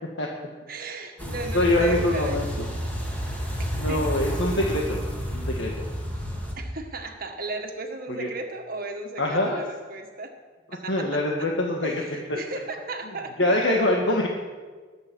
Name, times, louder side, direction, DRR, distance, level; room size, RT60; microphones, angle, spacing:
voice 1, 0.7-2.4 3.6-4.3 6.6-10.3 10.7-11.2 11.8-13.5, right 2 dB, 50° right, 4 dB, 1.8 m, -35 dB
voice 2, 1.2-2.4 3.7-5.0 5.3-5.9 8.2-8.3 9.2-9.6 10.9-11.9 13.4-14.3, left 1 dB, 65° left, -1 dB, 1.6 m, -24 dB
sound 1, 1.2-6.6, equal, 10° left, 2.7 m, -30 dB
21.0 x 8.8 x 6.2 m, 1.5 s
head